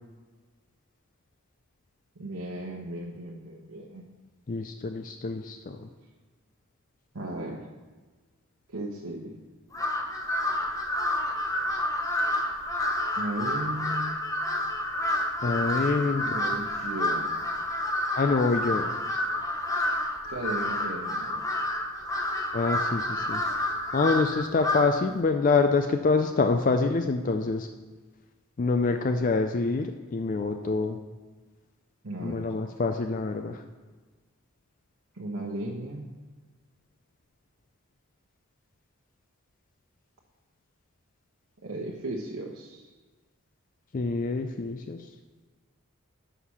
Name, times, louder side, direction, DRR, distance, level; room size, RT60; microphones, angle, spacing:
voice 1, 2.1-4.1 7.1-7.6 8.7-9.3 13.1-14.1 16.2-17.3 20.3-21.4 32.0-32.4 35.1-36.1 41.6-42.9, right 1 dB, 80° right, -2 dB, 0.9 m, -36 dB
voice 2, 4.5-5.9 15.4-16.2 18.2-19.0 22.5-23.4 23.9-27.7 28.6-31.0 32.2-33.6 43.9-45.0, left 4 dB, 35° left, 6 dB, 0.4 m, -26 dB
Crow, 9.7-25.1, left 1 dB, 15° left, 0.8 m, -29 dB
6.3 x 5.7 x 7.0 m, 1.3 s
head